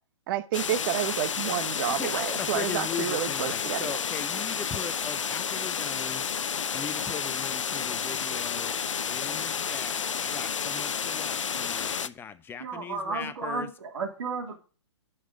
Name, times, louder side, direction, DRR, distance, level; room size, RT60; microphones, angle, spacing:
voice 1, 0.3-4.0, right 13 dB, 45° right, 0.9 m, -30 dB
sound 1, 0.5-12.1, left 7 dB, 85° left, 0.6 m, -31 dB
voice 2, 1.9-6.2 6.7-8.8 9.0-13.7, left 7 dB, 15° left, 0.7 m, -39 dB
voice 3, 12.6-14.6, right 4 dB, 70° right, 3.2 m, -33 dB
11.0 x 5.8 x 3.9 m
hypercardioid pair, 130°, 16 cm